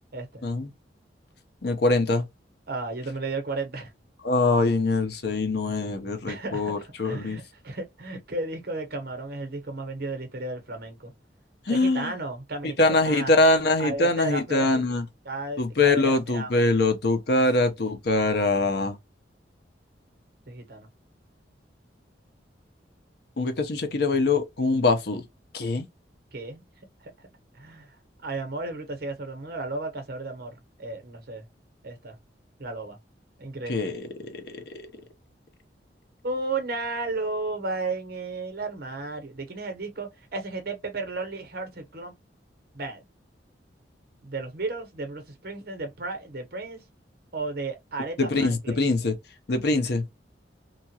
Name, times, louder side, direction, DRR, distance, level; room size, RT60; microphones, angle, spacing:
voice 1, 0.1-0.4 2.7-3.9 6.3-6.7 7.0-11.1 11.7-13.3 13.8-14.8 15.2-16.7 20.5-20.9 26.3-26.6 27.0-27.3 27.5-27.9 28.2-31.5 31.8-32.2 32.6-33.0 33.4-33.9 36.2-42.1 42.7-43.0 44.2-46.8 47.3-48.8, right 3 dB, 55° right, 0.9 m, -34 dB
voice 2, 1.6-2.2 4.2-7.4 11.7-12.1 12.8-15.1 15.6-19.0 23.4-25.2 25.5-25.9 33.7-34.8 48.2-49.2 49.5-50.0, left 2 dB, 65° left, 0.7 m, -23 dB
2.9 x 2.3 x 2.8 m
head